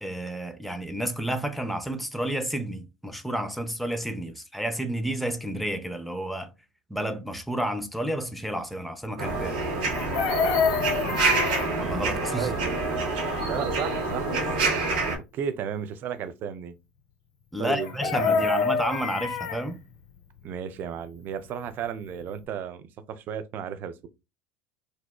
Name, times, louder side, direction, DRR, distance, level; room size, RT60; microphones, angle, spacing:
voice 1, 0.0-6.5 6.9-9.6 11.8-12.5 17.5-19.8, right 1 dB, ahead, 0.5 m, -31 dB
sound 1, 9.2-15.2, right 3 dB, 75° right, 0.8 m, -27 dB
Chicken rooster, 9.9-11.7 17.8-19.6 21.8-21.9 22.2-22.5, left 5 dB, 65° left, 0.4 m, -26 dB
voice 2, 10.7-11.6 12.4-13.0 13.4-14.7 15.3-16.7 17.6-18.5 20.4-24.1, right 8 dB, 50° right, 0.4 m, -34 dB
2.8 x 2.0 x 2.2 m
hypercardioid pair, 70°, 4 cm